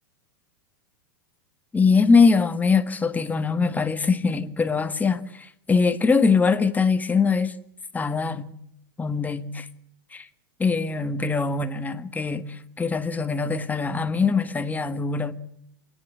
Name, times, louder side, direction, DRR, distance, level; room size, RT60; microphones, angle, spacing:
voice 1, 1.7-7.5 7.9-8.5 9.0-9.7 10.1-10.3 10.6-15.3, left 4 dB, 15° left, 1.6 m, -22 dB
26.5 x 11.0 x 9.7 m
hypercardioid pair, 110°, 12 cm